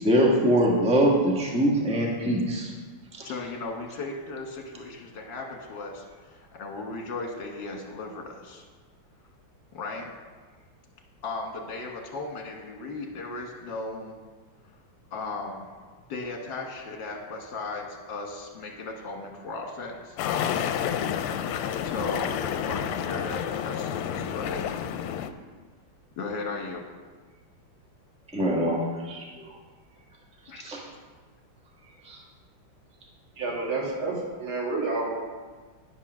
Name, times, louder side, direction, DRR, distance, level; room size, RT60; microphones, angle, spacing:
voice 1, 0.0-2.7 3.2-3.3 28.3-29.5 30.6-30.8 32.0-32.2, equal, 5° right, -2 dB, 1.1 m, -23 dB
voice 2, 3.2-8.6 9.7-10.1 11.2-14.1 15.1-15.7 16.1-20.2 21.8-24.6 26.2-26.8 30.5-30.6, left 3 dB, 60° left, 1 dB, 1.9 m, -36 dB
sound 1, 20.2-25.3, left 9 dB, 85° left, 1.5 m, -29 dB
voice 3, 33.4-35.2, right 3 dB, 70° right, -3 dB, 2.8 m, -29 dB
10.0 x 5.7 x 6.1 m, 1.4 s
omnidirectional pair, 2.4 m